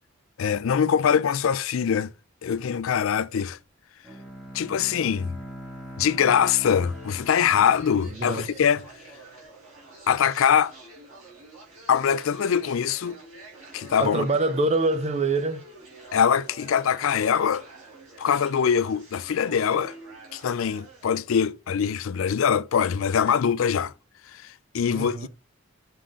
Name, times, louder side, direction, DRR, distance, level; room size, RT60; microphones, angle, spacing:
voice 1, 0.4-2.1 2.4-3.6 4.5-5.3 6.0-8.8 10.1-10.7 11.9-13.2 13.7-14.3 16.1-17.6 18.2-19.9 20.3-23.9 24.3-25.3, left 7 dB, 70° left, 0.4 m, -23 dB
Bowed string instrument, 4.0-9.0, equal, ahead, 1.2 m, -42 dB
sound 1, 6.3-21.0, right 2 dB, 75° right, 4.1 m, -47 dB
voice 2, 8.0-8.5 14.0-15.7 24.9-25.3, right 2 dB, 30° right, 0.4 m, -25 dB
7.0 x 3.7 x 3.7 m
head